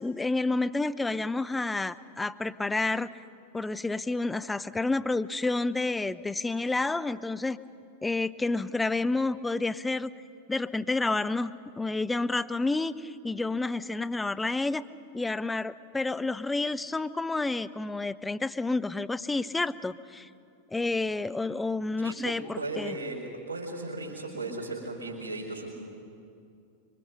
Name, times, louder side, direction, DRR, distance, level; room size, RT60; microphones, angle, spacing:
voice 1, 0.0-3.1 3.5-7.6 8.0-10.1 10.5-14.8 15.1-20.3 20.7-23.0, left 3 dB, 10° left, 13 dB, 0.5 m, -29 dB
voice 2, 22.0-25.7, right 2 dB, 90° left, -6 dB, 4.5 m, -36 dB
26.0 x 23.0 x 5.7 m, 2.5 s
figure-of-eight pair, 90°, 0 cm